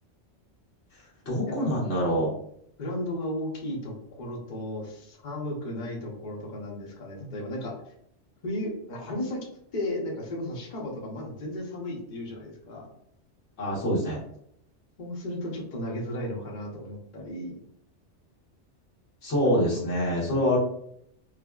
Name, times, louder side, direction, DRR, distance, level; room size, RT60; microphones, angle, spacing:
voice 1, 1.2-2.3 13.6-14.2 19.2-20.6, equal, 80° left, -5 dB, 1.6 m, -25 dB
voice 2, 2.8-7.9 8.4-9.5 9.7-12.9 15.0-17.6 19.6-19.8, left 1 dB, 45° left, -2 dB, 0.9 m, -34 dB
4.8 x 2.1 x 2.3 m, 0.68 s
omnidirectional pair, 1.2 m